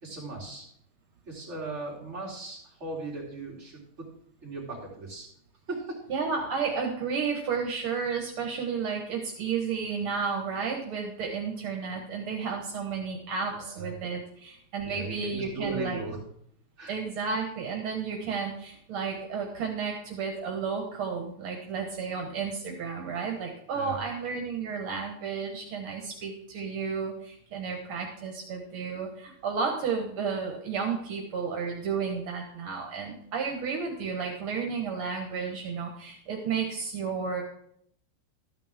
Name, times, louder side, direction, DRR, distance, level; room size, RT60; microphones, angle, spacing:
voice 1, 0.0-0.6 1.3-3.8 4.4-5.3 5.7-6.0 13.6-13.9 14.8-16.2 16.8-17.0 23.7-24.0, right 2 dB, 30° right, -4 dB, 3.2 m, -37 dB
voice 2, 6.1-16.0 16.9-37.4, right 5 dB, 75° right, 2 dB, 2.1 m, -32 dB
13.0 x 9.2 x 3.6 m, 0.70 s
omnidirectional pair, 2.4 m